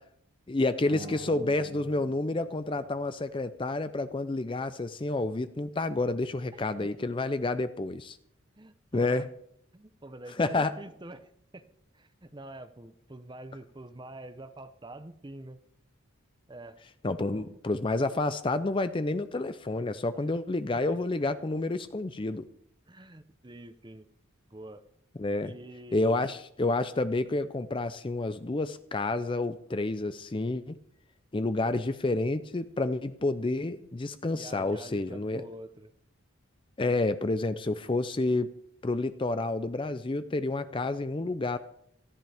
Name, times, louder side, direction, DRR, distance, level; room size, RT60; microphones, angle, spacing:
voice 1, 0.5-8.2 8.9-9.3 10.4-10.7 17.0-22.5 25.2-25.5 25.9-30.8 31.3-35.4 36.8-38.5 38.8-41.6, left 2 dB, 25° left, 12 dB, 0.4 m, -29 dB
sound 1, 0.8-3.5, right 2 dB, 40° right, 1.7 m, -46 dB
voice 2, 6.5-6.9 8.6-9.3 9.7-11.6 11.9-15.6 16.5-16.8 17.2-17.5 20.1-20.2 20.7-21.0 22.9-24.1 24.5-24.8 25.4-26.2 34.3-35.9 36.8-37.0, right 1 dB, 20° right, 11 dB, 0.7 m, -46 dB
18.5 x 13.5 x 3.5 m, 0.71 s
head